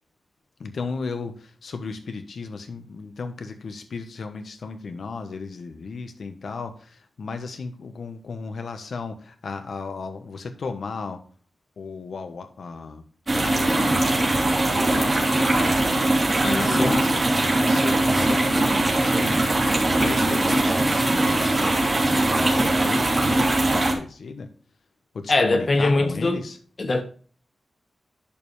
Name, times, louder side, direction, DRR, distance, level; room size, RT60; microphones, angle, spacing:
voice 1, 0.6-11.2 11.8-13.0 13.4-14.2 14.6-19.4 20.0-24.5 25.1-26.6, left 4 dB, 75° left, 1.1 m, -35 dB
sound 1, 13.3-23.9, right 2 dB, 30° right, 3.1 m, -21 dB
voice 2, 16.4-16.9 25.3-26.4 26.8-27.0, left 2 dB, 40° left, 1.5 m, -22 dB
11.5 x 5.4 x 3.3 m
wide cardioid pair, 115°, 0 cm